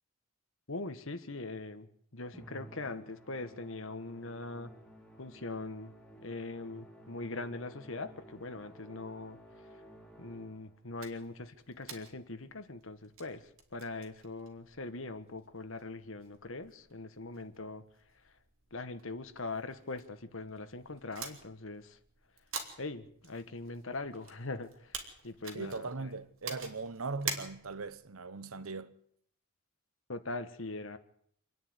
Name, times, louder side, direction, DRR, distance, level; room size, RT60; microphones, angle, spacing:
voice 1, 0.7-1.9 2.1-4.7 5.2-5.9 6.2-9.4 9.7-9.8 10.2-17.8 18.2-18.3 18.7-22.0 22.8-26.1 30.1-31.0, left 2 dB, 65° left, 1.6 m, -41 dB
Musical instrument, 2.3-10.9, right 1 dB, 5° left, 2.7 m, -55 dB
sound 1, 11.0-28.0, right 5 dB, 65° right, 3.3 m, -48 dB
voice 2, 25.5-28.9, right 3 dB, 85° right, 1.0 m, -39 dB
27.0 x 10.0 x 9.7 m
head